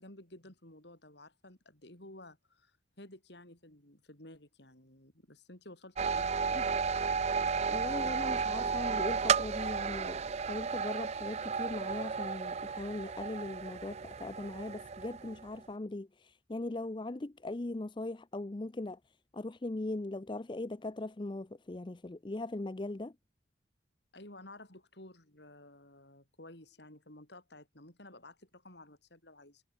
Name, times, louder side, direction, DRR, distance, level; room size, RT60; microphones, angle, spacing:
voice 1, 0.0-6.7 24.1-29.6, left 1 dB, 60° left, 5.3 m, -53 dB
sound 1, 6.0-15.6, right 5 dB, 35° right, 0.4 m, -33 dB
voice 2, 7.7-10.2 10.5-19.0 19.3-23.1, left 2 dB, 25° left, 0.5 m, -39 dB
head